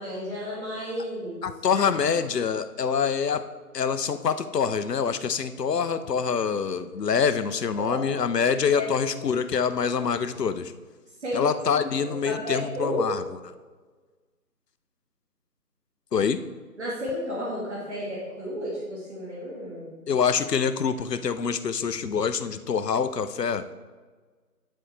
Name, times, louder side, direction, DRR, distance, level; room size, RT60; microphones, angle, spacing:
voice 1, 0.0-1.4 1.7-1.8 7.8-8.2 8.8-8.9 9.2-9.3 11.2-11.5 11.9-13.0 16.8-19.9, left 1 dB, 45° right, -6 dB, 2.0 m, -32 dB
voice 2, 1.4-3.4 3.7-10.7 11.3-13.2 16.1-16.4 20.1-23.7, left 6 dB, 80° left, 11 dB, 0.7 m, -25 dB
10.0 x 4.3 x 3.2 m, 1.4 s
figure-of-eight pair, 165°, 48 cm